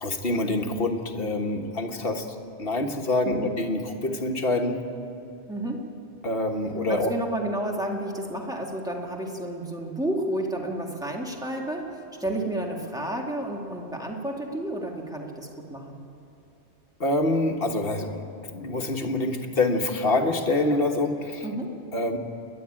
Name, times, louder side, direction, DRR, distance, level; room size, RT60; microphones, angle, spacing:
voice 1, 0.0-2.3 2.6-4.8 6.2-7.1 17.0-21.4 21.9-22.2, left 2 dB, 55° left, 4 dB, 1.6 m, -26 dB
voice 2, 5.5-5.9 6.9-16.0 21.4-21.7, right 1 dB, 5° right, 0 dB, 2.1 m, -31 dB
29.0 x 11.0 x 8.8 m, 2.9 s
omnidirectional pair, 1.2 m